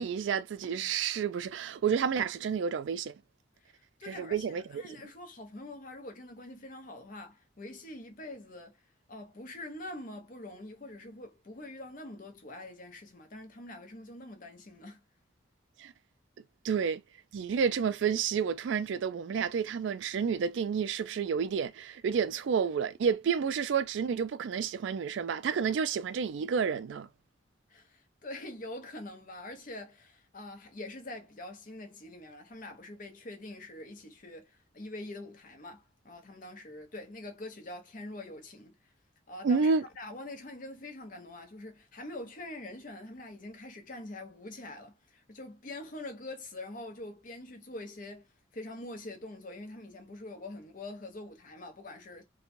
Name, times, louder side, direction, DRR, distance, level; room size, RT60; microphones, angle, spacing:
voice 1, 0.0-3.1 4.1-5.0 15.8-15.9 16.6-17.0 17.3-27.1 39.4-39.8, right 6 dB, 70° right, 0.3 m, -30 dB
voice 2, 3.6-8.8 9.1-15.0 27.7-38.7 39.3-48.3 48.5-52.2, left 2 dB, 45° left, 0.8 m, -44 dB
3.0 x 2.2 x 2.5 m
head